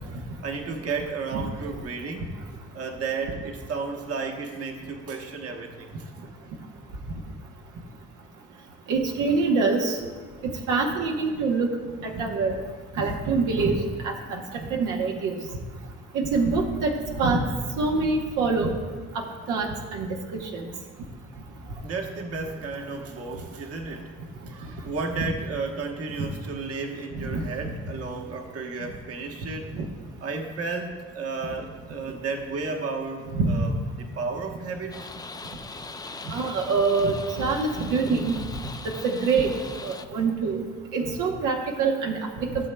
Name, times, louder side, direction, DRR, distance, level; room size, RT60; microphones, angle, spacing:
voice 1, 0.2-2.3 2.7-5.9 21.5-24.1 24.5-29.7 30.2-33.7 34.0-35.1, right 4 dB, 50° right, 2 dB, 1.1 m, -33 dB
voice 2, 8.9-10.0 10.7-11.7 12.2-12.6 13.0-13.7 14.0-15.4 16.1-17.4 17.8-18.7 19.1-20.2 20.5-20.6 25.2-25.3 27.2-27.4 29.7-29.9 33.3-33.7 36.3-38.4 39.0-39.5 39.8-40.6 40.9-42.7, right 4 dB, 85° right, 1 dB, 1.0 m, -25 dB
sound 1, 34.9-40.1, left 4 dB, 15° left, 0.3 m, -41 dB
15.0 x 7.3 x 2.2 m, 1.4 s
cardioid pair, 90°, 30 cm